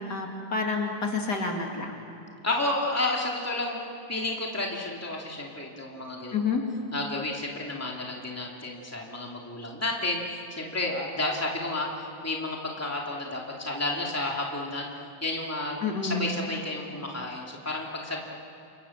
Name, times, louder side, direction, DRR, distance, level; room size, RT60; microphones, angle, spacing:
voice 1, 0.0-2.0 6.3-6.6 15.8-16.3, left 4 dB, 55° left, 1 dB, 3.1 m, -29 dB
voice 2, 2.4-3.8 4.1-6.3 6.9-11.9 12.2-14.9 15.2-15.8 16.0-18.2, left 2 dB, 5° left, -2 dB, 2.9 m, -31 dB
29.0 x 26.5 x 7.4 m, 2.5 s
omnidirectional pair, 2.1 m